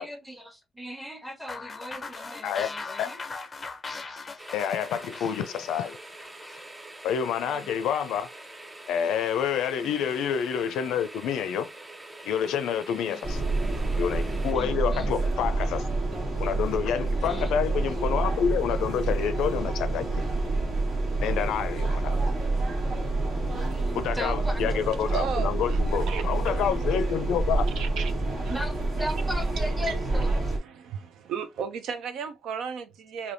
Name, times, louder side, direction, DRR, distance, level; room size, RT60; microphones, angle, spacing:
voice 1, 0.0-3.2 7.4-7.7 9.8-9.9 13.0-13.4 14.5-15.1 17.2-17.5 21.3-21.5 23.4-24.8 28.5-30.3, equal, 5° right, 1.0 m, -38 dB
sound 1, 1.5-6.6, left 3 dB, 30° left, 0.5 m, -39 dB
sound 2, 4.4-14.5, right 2 dB, 20° right, 0.6 m, -45 dB
voice 2, 4.5-6.0 7.0-8.3 8.9-11.7 12.2-13.4 14.0-15.8 16.4-20.2 21.2-22.2 23.9-27.7, left 8 dB, 85° left, 0.4 m, -28 dB
sound 3, 13.2-30.6, right 2 dB, 55° right, 1.4 m, -27 dB
voice 3, 25.1-26.2 27.8-28.5 29.8-30.0 30.5-33.3, right 7 dB, 80° right, 0.5 m, -35 dB
3.4 x 2.7 x 2.6 m
cardioid pair, 90°, 0 cm